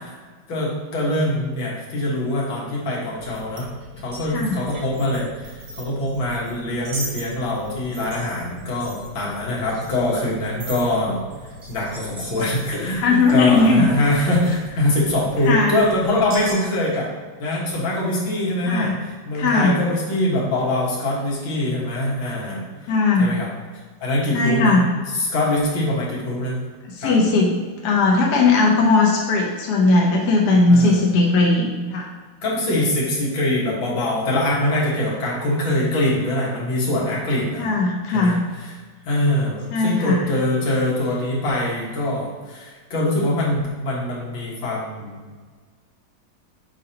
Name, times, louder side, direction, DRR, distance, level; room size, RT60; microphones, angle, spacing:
voice 1, 0.5-3.7 4.0-11.3 11.7-17.1 17.4-18.9 19.3-22.7 23.2-23.5 24.0-24.8 25.1-26.6 27.0-27.1 30.7-31.2 32.4-37.7 38.1-38.7 39.1-45.1, left 1 dB, 80° left, -5 dB, 2.3 m, -23 dB
sound 1, 3.2-16.5, right 1 dB, 80° right, 2.2 m, -39 dB
voice 2, 12.9-13.8 15.4-15.8 18.7-19.0 19.3-19.8 22.9-23.3 24.3-24.8 26.8-32.1 37.6-38.4 39.7-40.3, left 3 dB, 60° left, -1 dB, 1.3 m, -18 dB
6.6 x 5.1 x 2.8 m, 1.5 s
omnidirectional pair, 2.1 m